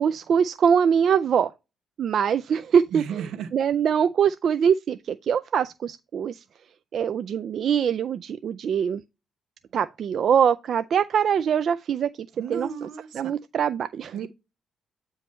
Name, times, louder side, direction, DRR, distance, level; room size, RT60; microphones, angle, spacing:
voice 1, 0.0-1.5 2.0-6.4 6.9-9.0 9.7-12.9 13.1-14.1, right 7 dB, 60° right, 0.3 m, -23 dB
voice 2, 2.9-3.5 12.4-13.3 14.1-14.3, right 7 dB, 80° right, 1.1 m, -33 dB
9.1 x 3.1 x 4.3 m
cardioid pair, 90°, 0 cm